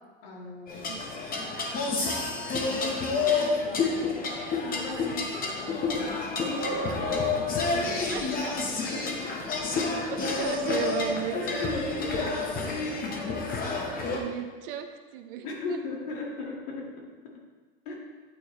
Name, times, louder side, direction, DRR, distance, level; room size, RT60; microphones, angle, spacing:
voice 1, 0.2-0.9 2.6-3.0 3.3-4.3 4.6-8.3 8.6-9.6 11.3-12.9 13.3-13.4 14.1-14.2 15.4-17.3 17.9-18.0, left 3 dB, 70° left, -2 dB, 2.0 m, -38 dB
sound 1, 0.7-14.2, left 3 dB, 30° left, 1.0 m, -29 dB
sound 2, 2.0-5.0, right 1 dB, 10° right, 1.3 m, -43 dB
voice 2, 6.8-7.3 8.1-8.6 10.1-11.6 12.0-12.3 13.9-14.9 15.1-15.8, right 10 dB, 65° right, 7 dB, 0.7 m, -36 dB
9.0 x 4.5 x 3.2 m, 1.4 s
supercardioid pair, 115°, 30 cm